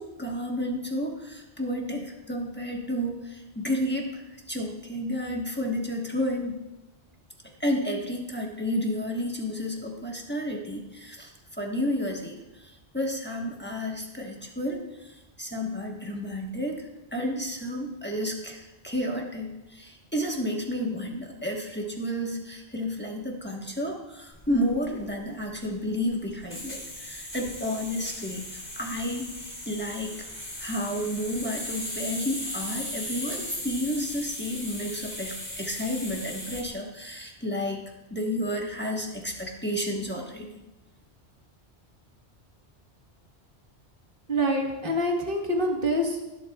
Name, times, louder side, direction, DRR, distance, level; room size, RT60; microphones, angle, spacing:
voice 1, 0.0-6.6 7.6-30.1 30.6-37.8 38.1-40.6, equal, 10° left, 0 dB, 1.1 m, -31 dB
sound 1, 24.3-36.7, left 1 dB, 35° left, 2.6 m, -38 dB
voice 2, 44.3-46.2, equal, 50° right, 1 dB, 1.6 m, -26 dB
17.0 x 7.7 x 2.3 m, 1.0 s
omnidirectional pair, 1.2 m